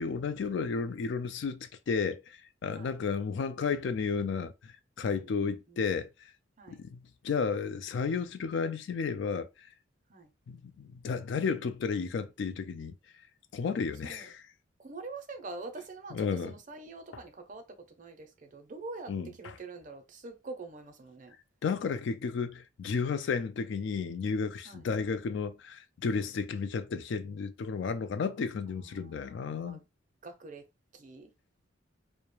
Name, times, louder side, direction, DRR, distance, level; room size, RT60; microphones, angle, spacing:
voice 1, 0.0-6.3 6.7-9.7 10.5-13.0 13.5-14.4 16.1-16.5 19.1-19.3 21.6-29.8, left 5 dB, 65° left, 0.3 m, -33 dB
voice 2, 5.1-5.8 6.6-6.8 10.1-10.3 14.0-14.3 14.8-21.3 24.7-24.9 28.7-29.8 30.2-30.6 30.9-31.3, right 3 dB, 40° right, 0.5 m, -45 dB
2.3 x 2.1 x 3.0 m
head